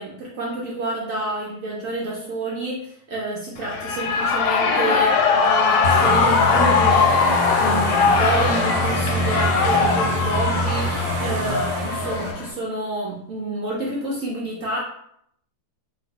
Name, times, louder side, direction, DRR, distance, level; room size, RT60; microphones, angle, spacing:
voice 1, 0.0-14.8, right 2 dB, 70° right, -5 dB, 0.7 m, -29 dB
Shout / Cheering, 3.6-12.5, left 5 dB, 75° left, 1.2 m, -20 dB
sound 1, 5.8-12.3, right 1 dB, 90° right, 1.5 m, -26 dB
3.1 x 2.5 x 4.0 m, 0.73 s
omnidirectional pair, 2.2 m